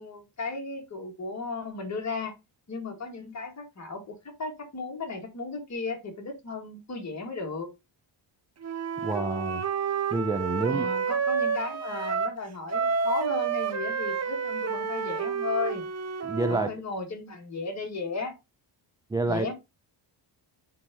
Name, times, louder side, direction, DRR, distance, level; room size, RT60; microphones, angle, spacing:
voice 1, 0.0-2.3 2.7-7.7 10.6-15.8 16.5-18.4 19.3-19.5, left 3 dB, 35° left, 2.0 m, -35 dB
Wind instrument woodwind instrument, 8.6-12.4 12.7-16.7, right 6 dB, 35° right, 0.9 m, -29 dB
voice 2, 9.0-9.6 10.1-10.9 16.2-16.7 19.1-19.5, right 2 dB, 10° right, 0.3 m, -28 dB
9.8 x 3.5 x 2.9 m
cardioid pair, 135°, 45 cm